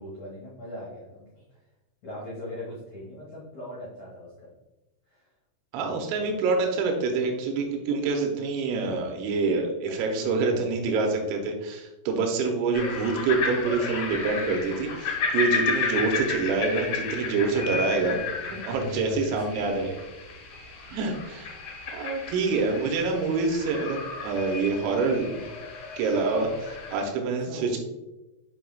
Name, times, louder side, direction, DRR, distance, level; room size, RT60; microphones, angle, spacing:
voice 1, 0.0-1.6 2.0-4.5 5.1-5.2 5.7-6.4 10.0-11.2 17.4-17.7 18.5-20.0 20.4-20.5 27.2-27.8, left 1 dB, 85° left, -7 dB, 1.5 m, -40 dB
voice 2, 5.7-18.2 18.5-19.9 20.9-21.6 21.9-25.4 26.0-27.8, right 4 dB, 90° right, 3 dB, 3.5 m, -26 dB
sound 1, 12.7-27.0, left 4 dB, 65° left, 2.5 m, -33 dB
7.5 x 5.7 x 2.3 m, 1.0 s
omnidirectional pair, 5.8 m